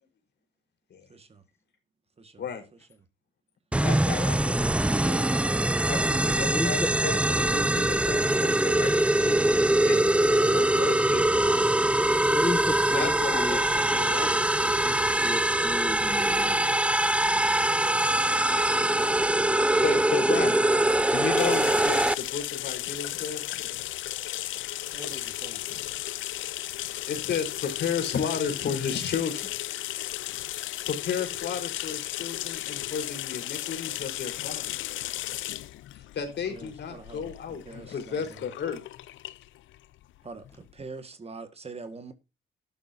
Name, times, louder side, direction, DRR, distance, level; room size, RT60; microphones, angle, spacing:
voice 1, 1.1-1.4 2.2-2.4 24.9-25.6 36.5-37.3 37.7-38.4 40.2-42.1, right 4 dB, 30° right, 1.8 m, -44 dB
sound 1, 3.7-22.1, right 1 dB, 5° right, 0.5 m, -23 dB
voice 2, 3.8-5.3 5.9-9.5 9.8-11.8 12.9-14.9 19.6-20.6 21.1-23.7 25.7-25.8 27.1-29.5 30.5-35.0 35.9-38.8, left 6 dB, 60° left, 4.4 m, -34 dB
voice 3, 6.4-7.3 10.2-10.3 12.1-13.6 14.2-14.3 14.8-14.9 15.2-16.7, left 2 dB, 15° left, 1.3 m, -34 dB
sound 2, 21.4-40.8, left 15 dB, 80° left, 0.6 m, -35 dB
11.5 x 11.5 x 2.8 m
cardioid pair, 90°, 20 cm